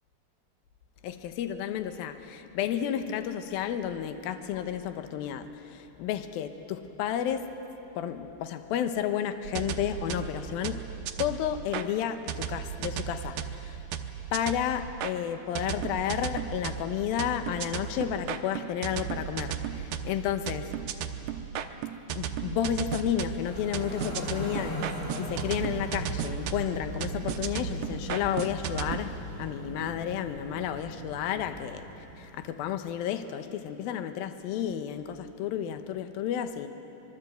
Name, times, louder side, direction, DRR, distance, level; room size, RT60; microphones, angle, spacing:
voice 1, 1.0-7.5 8.0-10.9 11.2-13.8 14.3-21.0 22.2-36.7, left 10 dB, 80° left, 8 dB, 2.8 m, -32 dB
sound 1, 9.4-11.9 12.3-15.1 15.6-29.0, right 9 dB, 70° right, 2.2 m, -35 dB
sound 2, 23.2-32.5, right 1 dB, 25° right, 7.6 m, -39 dB
25.0 x 22.5 x 8.0 m, 3.0 s
omnidirectional pair, 4.2 m